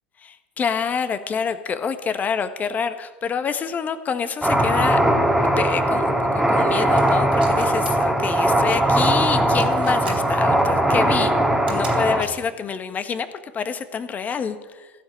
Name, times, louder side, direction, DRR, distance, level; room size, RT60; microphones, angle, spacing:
voice 1, 0.2-5.0 5.6-11.3 11.7-13.3 13.5-14.9, left 6 dB, 30° left, 10 dB, 1.4 m, -27 dB
sound 1, 4.4-12.2, right 1 dB, 5° right, 1.9 m, -19 dB
sound 2, 7.0-7.9 8.2-8.5 8.9-9.2 9.5-10.1 10.6-10.7 11.5-12.4, right 6 dB, 80° right, 3.2 m, -39 dB
16.0 x 7.6 x 9.1 m, 1.3 s
figure-of-eight pair, 75°, 6 cm